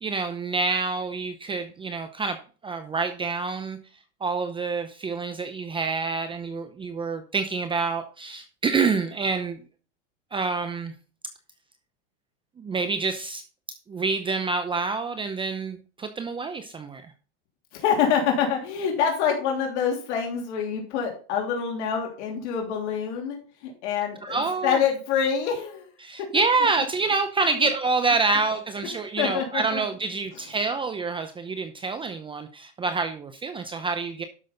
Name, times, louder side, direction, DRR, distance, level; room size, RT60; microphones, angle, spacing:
voice 1, 0.0-2.4 2.6-3.8 4.2-9.6 10.3-10.9 12.6-13.4 13.7-17.0 24.2-24.8 26.0-34.2, right 4 dB, 15° right, 8 dB, 0.7 m, -27 dB
voice 2, 17.7-25.9 27.5-27.7 29.2-29.8, left 7 dB, 65° left, 1 dB, 3.1 m, -26 dB
12.0 x 6.2 x 3.9 m, 0.38 s
supercardioid pair, 140°, 36 cm